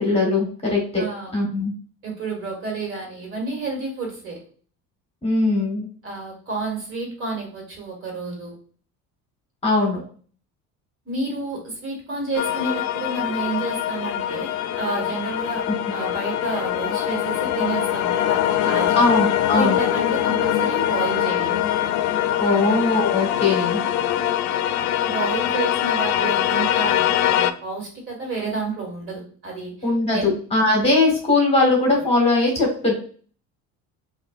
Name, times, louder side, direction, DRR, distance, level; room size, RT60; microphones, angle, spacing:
voice 1, 0.0-1.0 1.3-1.7 5.2-5.9 9.6-10.0 18.9-19.8 22.4-23.8 29.8-32.9, left 3 dB, 20° left, -1 dB, 1.3 m, -20 dB
voice 2, 1.0-1.4 2.0-4.4 6.0-8.6 11.0-15.6 15.9-19.1 19.5-21.6 22.6-22.7 25.0-29.9 30.1-30.3, right 3 dB, 45° right, -1 dB, 1.7 m, -30 dB
sound 1, 12.3-27.5, left 11 dB, 75° left, 0.5 m, -23 dB
5.2 x 2.6 x 2.4 m, 0.43 s
cardioid pair, 155°, 30 cm